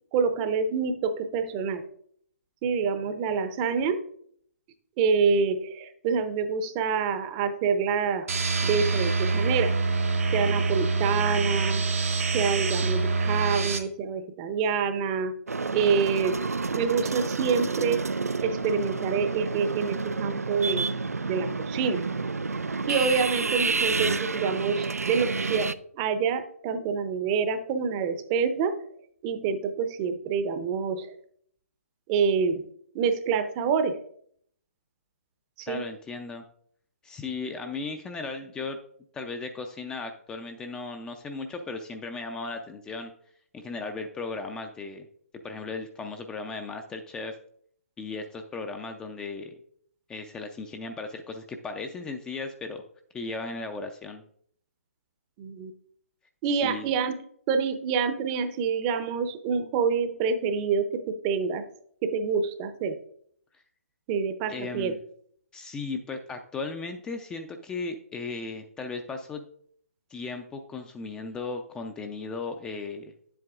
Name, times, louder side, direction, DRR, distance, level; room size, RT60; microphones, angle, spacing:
voice 1, 0.1-1.8 2.6-4.0 5.0-8.3 8.6-9.7 10.3-11.8 12.3-15.3 15.7-16.4 16.7-18.0 18.4-20.9 21.3-22.0 22.9-25.7 26.0-28.8 29.2-31.2 32.1-32.6 32.9-34.0 35.6-35.8 55.4-55.7 56.4-57.2 57.5-61.6 62.0-63.0 64.1-64.9, right 5 dB, 25° right, 10 dB, 0.6 m, -27 dB
sound 1, 8.3-13.8, right 3 dB, 70° right, 1.1 m, -25 dB
sound 2, 15.5-25.7, right 4 dB, 85° right, 0.4 m, -29 dB
voice 2, 35.7-36.4 37.0-38.8 39.1-43.1 43.5-45.1 45.4-47.4 48.0-49.6 50.1-52.8 53.1-54.2 56.6-56.9 64.5-65.0 65.5-69.4 70.1-73.1, left 3 dB, 10° left, 5 dB, 0.4 m, -36 dB
9.4 x 7.8 x 2.4 m, 0.63 s
figure-of-eight pair, 135°, 8 cm